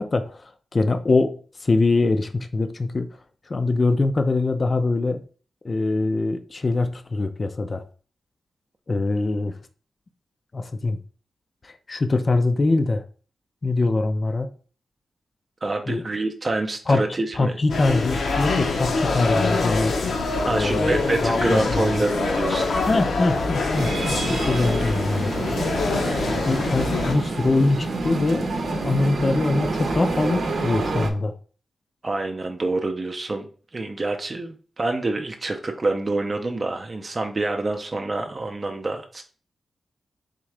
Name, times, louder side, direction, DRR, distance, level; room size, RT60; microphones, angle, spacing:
voice 1, 0.0-3.2 3.5-5.2 5.6-7.8 8.9-9.6 10.5-11.0 11.6-13.0 13.6-14.5 15.9-16.0 16.9-17.1 17.4-20.0 20.4-22.0 22.9-25.3 26.2-31.3, left 3 dB, 35° left, 0.4 m, -23 dB
voice 2, 15.6-17.5 20.4-22.7 32.0-39.2, right 2 dB, 30° right, 0.5 m, -27 dB
sound 1, 17.7-27.1, left 3 dB, 80° left, 0.7 m, -25 dB
sound 2, 23.7-31.1, right 3 dB, 70° right, 0.7 m, -28 dB
3.7 x 3.5 x 3.3 m
wide cardioid pair, 120°, 0 cm